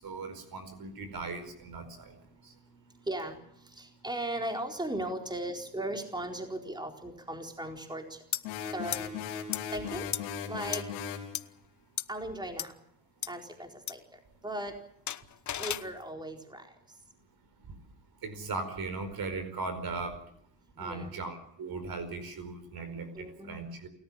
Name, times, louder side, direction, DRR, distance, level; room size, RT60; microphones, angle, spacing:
voice 1, 0.0-2.1 2.4-2.5 18.2-20.2 20.8-23.9, right 3 dB, 50° right, 10 dB, 4.8 m, -38 dB
voice 2, 3.1-3.4 3.8-8.2 8.7-9.1 9.7-10.1 10.5-10.8 12.1-12.7 13.3-14.0 14.4-14.7 15.6-16.7 20.8-21.1 23.1-23.6, right 1 dB, 10° right, 3 dB, 4.2 m, -37 dB
sound 1, 8.3-8.4 8.9-9.0 9.5-9.6 10.1-10.2 10.7-10.8 11.3-11.4 12.0-12.1 12.6-12.7 13.2-13.3 13.9-14.0 15.1-15.9, left 10 dB, 35° left, 1.0 m, -33 dB
sound 2, 8.4-11.3, left 7 dB, 85° left, 3.9 m, -37 dB
28.5 x 14.0 x 8.8 m, 0.73 s
hypercardioid pair, 70°, 47 cm